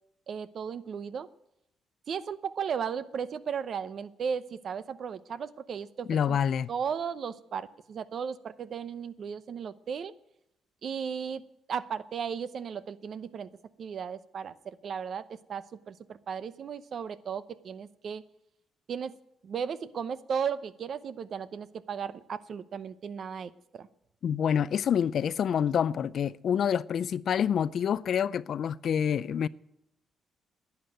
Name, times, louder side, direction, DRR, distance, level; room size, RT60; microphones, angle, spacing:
voice 1, 0.3-1.3 2.1-6.4 6.7-10.1 10.8-11.4 11.7-13.5 13.8-18.2 18.9-19.1 19.4-23.9, right 7 dB, 55° right, 0.7 m, -35 dB
voice 2, 6.1-6.7 24.2-29.5, left 8 dB, 60° left, 0.4 m, -27 dB
11.0 x 9.6 x 9.2 m
cardioid pair, 90°, 0 cm